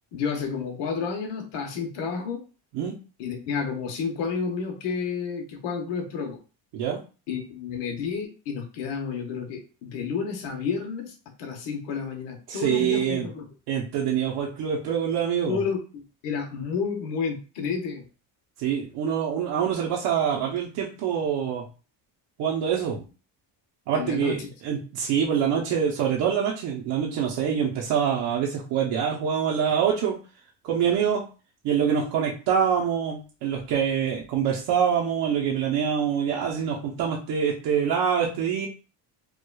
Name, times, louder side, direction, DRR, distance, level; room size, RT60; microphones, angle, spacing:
voice 1, 0.1-2.4 3.2-6.4 7.3-13.5 15.4-18.0 23.9-24.5, left 5 dB, 70° left, 3 dB, 1.0 m, -31 dB
voice 2, 12.5-13.3 13.7-15.6 18.6-21.6 22.4-23.0 23.9-30.2 30.6-31.2 31.6-38.7, right 8 dB, 70° right, -2 dB, 0.8 m, -25 dB
4.7 x 2.3 x 2.3 m, 0.34 s
cardioid pair, 165°, 44 cm